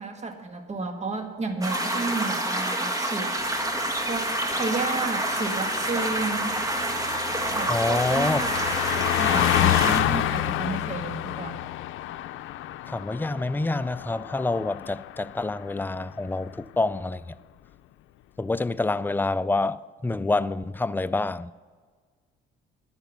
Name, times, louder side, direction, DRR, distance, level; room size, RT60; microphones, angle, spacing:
voice 1, 0.0-3.3 4.1-6.6 7.5-11.6, right 3 dB, 35° right, 1.7 m, -32 dB
sound 1, 1.6-10.0, right 1 dB, 15° right, 1.6 m, -28 dB
Car passing by, 3.5-15.4 15.7-16.0, left 14 dB, 85° left, 0.5 m, -29 dB
voice 2, 7.7-8.4 12.9-17.4 18.4-21.5, left 2 dB, 10° left, 0.4 m, -27 dB
10.5 x 10.5 x 6.1 m
cardioid pair, 90°, 20 cm